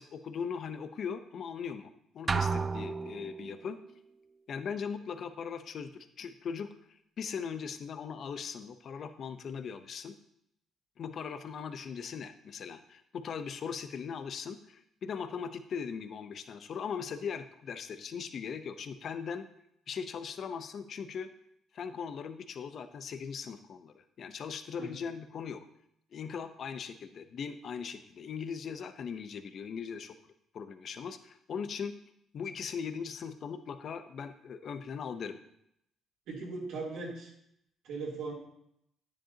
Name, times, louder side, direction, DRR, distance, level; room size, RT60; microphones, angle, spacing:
voice 1, 0.0-3.8 4.5-6.7 7.2-10.1 11.0-19.4 19.9-21.3 21.7-25.6 26.1-30.1 30.5-32.0 32.3-35.4, left 6 dB, 60° left, 9 dB, 0.8 m, -39 dB
sound 1, 2.3-3.7, right 4 dB, 35° right, 0.5 m, -32 dB
voice 2, 36.3-37.3 37.8-38.3, right 3 dB, 75° right, -3 dB, 3.4 m, -38 dB
10.0 x 9.9 x 2.9 m, 0.75 s
supercardioid pair, 70°, 0 cm